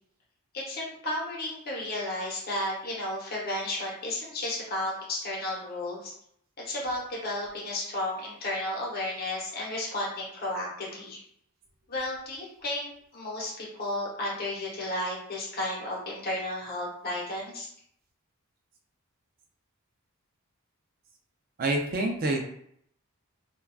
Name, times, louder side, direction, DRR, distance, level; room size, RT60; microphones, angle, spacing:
voice 1, 0.5-6.1 6.6-11.2 11.9-17.7, left 1 dB, 45° left, -4 dB, 0.9 m, -33 dB
voice 2, 21.6-22.4, right 2 dB, 40° right, 1 dB, 0.4 m, -27 dB
3.4 x 2.2 x 2.3 m, 0.69 s
head